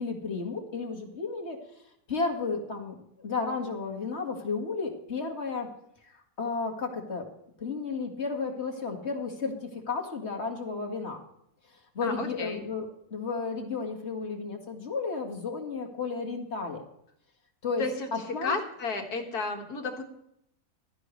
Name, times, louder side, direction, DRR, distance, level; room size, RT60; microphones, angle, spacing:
voice 1, 0.0-1.6 2.1-5.7 6.1-7.3 7.6-11.2 11.9-16.8 17.6-17.8 18.1-18.6, left 4 dB, 45° left, 2 dB, 2.1 m, -33 dB
voice 2, 12.0-12.6 17.8-18.1 18.4-20.0, left 3 dB, 85° left, 3 dB, 2.3 m, -32 dB
16.5 x 12.5 x 3.2 m, 0.75 s
omnidirectional pair, 1.6 m